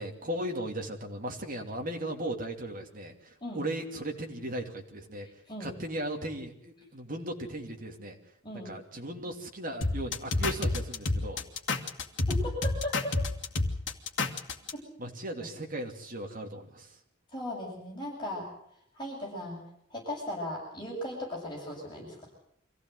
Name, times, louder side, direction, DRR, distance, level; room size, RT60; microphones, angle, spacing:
voice 1, 0.0-5.3 5.6-8.2 8.5-11.4 15.0-16.9, right 1 dB, 45° right, 2 dB, 3.0 m, -37 dB
sound 1, 9.8-14.7, left 2 dB, 65° left, 2.1 m, -29 dB
voice 2, 12.3-13.1 17.3-18.5 19.0-19.6 19.9-22.3, left 1 dB, 25° left, -2 dB, 7.6 m, -37 dB
25.0 x 16.0 x 8.0 m, 0.69 s
head